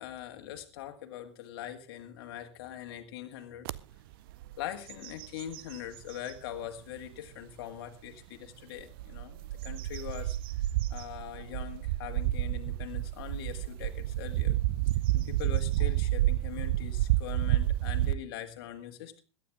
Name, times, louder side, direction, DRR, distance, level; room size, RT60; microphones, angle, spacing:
voice 1, 0.0-3.7 4.6-10.4 10.9-14.6 15.1-19.2, left 11 dB, 55° left, 6 dB, 1.8 m, -42 dB
sound 1, 3.7-3.8 4.3-4.5 4.9-6.4 7.0-7.1 8.8-18.1, right 15 dB, 55° right, 0.6 m, -30 dB
17.0 x 12.0 x 3.5 m, 0.33 s
figure-of-eight pair, 95°, 14 cm